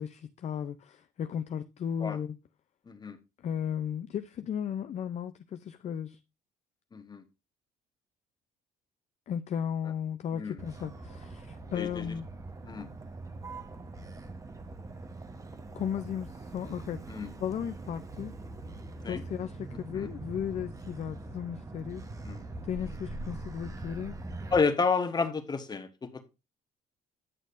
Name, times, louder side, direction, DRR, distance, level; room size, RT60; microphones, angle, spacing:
voice 1, 0.0-2.4 3.4-6.2 9.3-12.3 15.7-17.0 17.4-18.3 19.0-22.0 22.6-24.2, left 8 dB, 40° left, 0.5 m, -35 dB
voice 2, 2.9-3.2 6.9-7.2 10.3-10.6 11.7-12.1 12.6-12.9 17.1-17.3 19.0-19.2 19.9-20.1 22.3-22.4 24.5-26.2, left 4 dB, 25° left, 1.0 m, -30 dB
Motor vehicle (road), 10.6-24.6, right 2 dB, 20° right, 0.9 m, -43 dB
9.9 x 6.3 x 2.5 m
cardioid pair, 110°, 17 cm